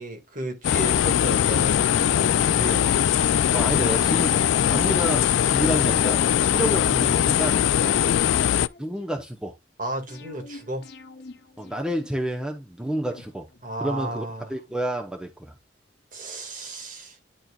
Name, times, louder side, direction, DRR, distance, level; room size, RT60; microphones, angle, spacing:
voice 1, 0.0-2.9 7.8-8.1 9.8-10.9 13.6-14.5 16.1-17.2, right 1 dB, 45° right, 1.9 m, -34 dB
sound 1, 0.6-8.7, left 9 dB, 85° left, 0.3 m, -21 dB
sound 2, 0.9-7.6, right 2 dB, 65° right, 1.3 m, -48 dB
voice 2, 3.5-6.2 6.5-7.7 8.8-9.6 11.6-13.5 13.8-14.2 14.5-15.5, right 1 dB, 5° right, 0.8 m, -29 dB
sound 3, 4.0-6.1 7.0-9.2 10.1-12.5 13.1-14.8 15.1-15.2, left 2 dB, 60° left, 1.0 m, -47 dB
10.5 x 4.3 x 2.3 m
head